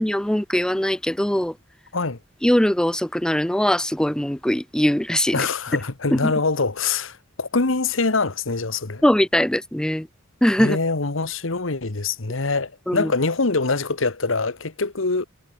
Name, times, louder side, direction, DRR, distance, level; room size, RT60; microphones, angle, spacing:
voice 1, 0.0-1.5 2.4-5.4 6.1-6.3 9.0-10.1 10.4-10.8 12.9-13.1, equal, 5° left, 0.4 m, -21 dB
voice 2, 5.3-9.0 10.6-15.3, left 3 dB, 85° left, 1.5 m, -24 dB
head